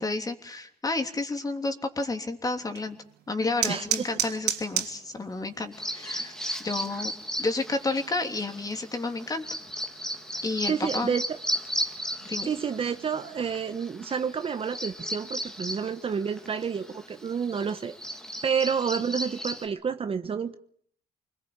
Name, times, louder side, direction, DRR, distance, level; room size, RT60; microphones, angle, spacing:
voice 1, 0.0-3.0 3.3-6.3 6.6-7.1 7.4-9.4 10.4-11.1 12.2-12.5, left 3 dB, 20° left, 6 dB, 3.2 m, -30 dB
sound 1, 2.6-13.7, right 11 dB, 80° right, 3.2 m, -38 dB
voice 2, 3.7-4.1 10.7-11.2 12.4-18.0 18.4-20.6, right 6 dB, 35° right, 9 dB, 1.2 m, -29 dB
Bird vocalization bird call bird song, 5.7-19.7, equal, 5° left, 2.1 m, -36 dB
25.5 x 20.0 x 8.9 m, 0.63 s
cardioid pair, 110°, 17 cm